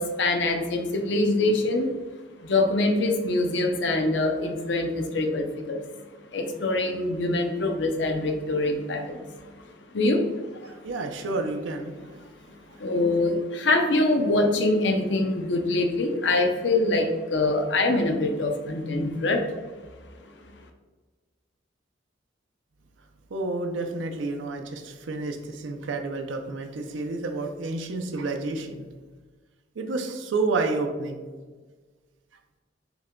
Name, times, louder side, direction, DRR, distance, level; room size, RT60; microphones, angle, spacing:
voice 1, 0.0-1.9 2.4-5.8 6.3-9.2 9.9-10.2 10.6-10.7 12.8-19.4, left 2 dB, 65° left, 4 dB, 0.6 m, -24 dB
voice 2, 10.7-12.2 12.7-12.8 23.3-28.8 29.8-31.2, right 3 dB, 85° right, 5 dB, 0.5 m, -30 dB
5.8 x 2.2 x 3.7 m, 1.4 s
head